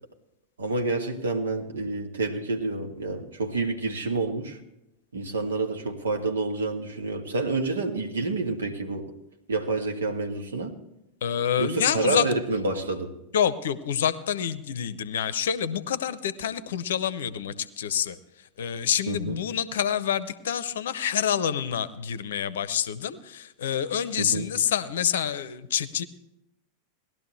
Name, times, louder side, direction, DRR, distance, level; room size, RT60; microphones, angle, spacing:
voice 1, 0.6-4.6 5.1-9.1 9.5-10.7 11.6-13.1 19.1-19.4 24.2-24.5, right 3 dB, 70° right, 4 dB, 1.6 m, -28 dB
voice 2, 11.2-12.3 13.3-18.2 18.6-26.0, left 9 dB, 60° left, 16 dB, 0.7 m, -27 dB
18.5 x 12.0 x 3.2 m, 0.89 s
figure-of-eight pair, 90°, 0 cm